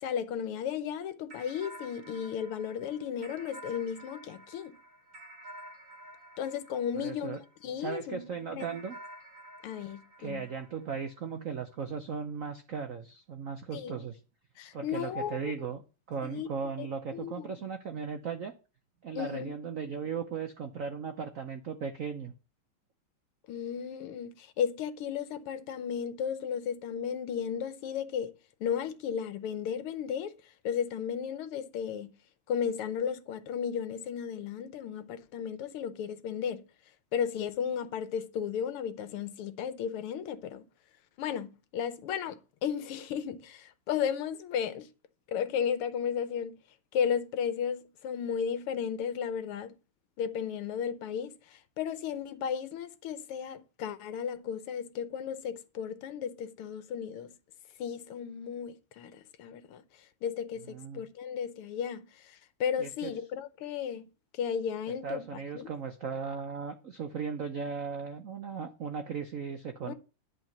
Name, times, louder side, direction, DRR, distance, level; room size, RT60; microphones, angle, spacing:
voice 1, 0.0-4.7 6.4-8.2 8.5-8.6 9.6-10.5 13.7-14.0 14.6-15.5 16.2-16.5 16.8-16.9 17.1-17.6 19.1-19.5 23.5-28.3 28.6-30.3 30.6-32.1 32.5-36.6 37.1-40.6 41.2-44.9 45.3-46.6 46.9-49.7 50.2-57.3 57.8-59.8 60.2-64.1 64.3-65.3 65.5-65.7 69.8-69.9, left 8 dB, 80° left, 1.8 m, -34 dB
sound 1, 1.3-7.9 8.6-11.4, right 1 dB, 40° right, 2.2 m, -50 dB
voice 2, 7.0-7.4 7.8-9.0 10.2-14.2 14.7-15.8 16.1-18.5 19.0-22.3 60.7-61.0 62.8-63.1 65.0-69.9, right 6 dB, 70° right, 0.7 m, -37 dB
10.5 x 4.0 x 7.3 m
omnidirectional pair, 2.4 m